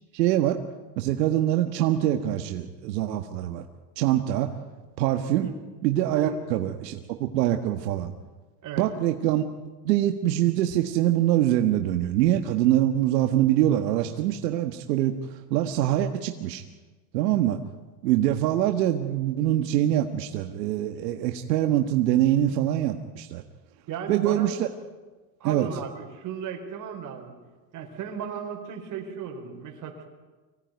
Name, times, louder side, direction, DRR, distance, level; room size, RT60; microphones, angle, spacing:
voice 1, 0.1-0.6 1.0-3.6 4.0-4.5 5.0-5.5 5.8-8.1 8.8-9.4 9.8-15.1 15.5-16.6 17.1-17.6 18.0-23.4 24.1-24.7 25.4-25.7, right 12 dB, 75° right, 5 dB, 1.7 m, -24 dB
voice 2, 23.9-24.5 25.4-27.4 27.7-30.1, right 7 dB, 40° right, 3 dB, 5.0 m, -35 dB
25.0 x 17.5 x 9.4 m, 1.3 s
supercardioid pair, 135°, 49 cm